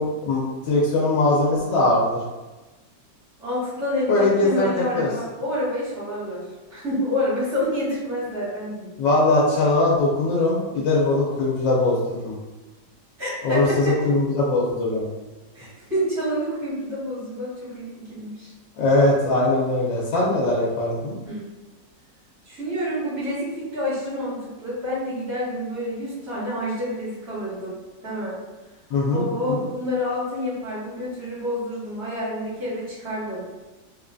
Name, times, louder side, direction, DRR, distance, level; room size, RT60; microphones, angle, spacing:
voice 1, 0.0-2.2 4.1-5.1 9.0-12.3 13.4-15.1 18.8-21.2 28.9-29.2 29.5-29.6, left 2 dB, 90° left, -4 dB, 1.4 m, -21 dB
voice 2, 3.4-6.4 6.7-8.9 13.2-13.9 15.5-18.5 21.2-21.5 22.4-27.7 28.0-28.4 29.1-33.4, equal, 60° right, -13 dB, 2.2 m, -28 dB
3.7 x 3.0 x 2.5 m, 1.2 s
omnidirectional pair, 1.9 m